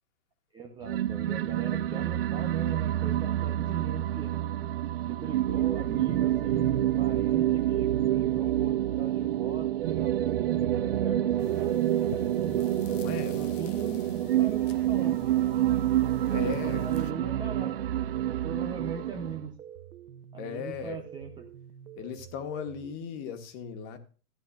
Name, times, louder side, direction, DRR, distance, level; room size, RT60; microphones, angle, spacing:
voice 1, 0.5-4.4 5.1-12.7 13.3-15.2 16.2-17.8 18.4-19.5 20.3-21.5, right 5 dB, 10° right, 0.8 m, -40 dB
sound 1, 0.8-19.4, right 12 dB, 40° right, 0.5 m, -28 dB
sound 2, 5.6-22.9, right 11 dB, 80° right, 0.9 m, -46 dB
sound 3, 11.4-17.1, left 9 dB, 55° left, 1.1 m, -49 dB
voice 2, 12.8-13.5 16.3-16.8 20.4-21.0 22.0-24.0, left 7 dB, 30° left, 1.7 m, -37 dB
15.0 x 10.0 x 2.5 m
hypercardioid pair, 130°, 45 cm